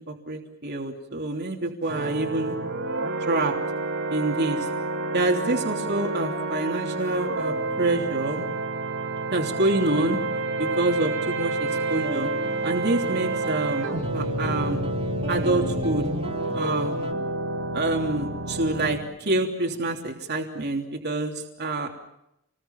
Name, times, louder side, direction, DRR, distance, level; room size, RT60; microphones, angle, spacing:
voice 1, 0.1-2.5 3.2-3.5 4.1-4.7 5.1-8.4 9.3-10.2 10.6-12.3 12.6-14.8 15.3-16.1 16.5-16.9 17.7-21.9, right 2 dB, 50° right, 1 dB, 3.2 m, -27 dB
sound 1, 1.9-19.0, right 2 dB, 70° right, 3.5 m, -29 dB
sound 2, 11.7-17.1, right 2 dB, 30° right, 2.7 m, -38 dB
29.0 x 21.0 x 7.3 m, 0.82 s
head